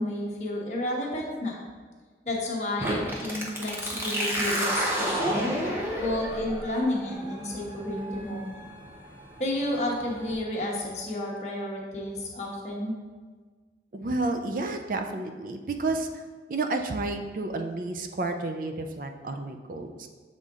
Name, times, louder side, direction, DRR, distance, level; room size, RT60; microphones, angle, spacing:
voice 1, 0.0-1.5 2.2-5.3 6.0-8.7 9.4-13.0, left 1 dB, 40° left, -2 dB, 1.1 m, -31 dB
sound 1, 2.8-10.3, equal, 15° right, 0.7 m, -31 dB
voice 2, 13.9-16.2 16.5-20.1, right 2 dB, 50° right, 5 dB, 0.4 m, -31 dB
7.3 x 3.8 x 3.6 m, 1.4 s
head